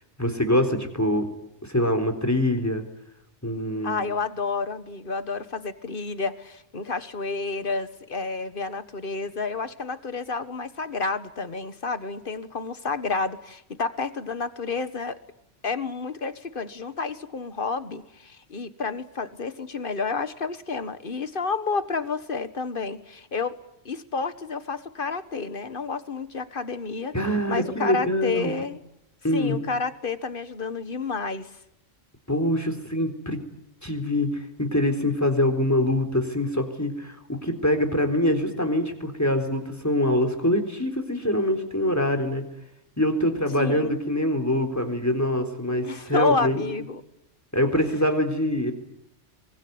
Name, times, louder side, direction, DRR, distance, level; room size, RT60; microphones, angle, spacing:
voice 1, 0.2-1.3 1.6-2.8 3.4-4.0 27.1-28.6 29.2-29.6 32.3-33.4 33.8-42.4 43.0-46.6 47.5-48.7, left 1 dB, 15° left, 7 dB, 3.8 m, -24 dB
voice 2, 3.8-15.2 15.6-23.6 23.8-27.1 27.5-28.8 29.3-31.5 43.6-43.9 45.8-47.0, left 4 dB, 45° left, 12 dB, 1.6 m, -30 dB
25.5 x 23.5 x 9.5 m, 0.81 s
omnidirectional pair, 1.3 m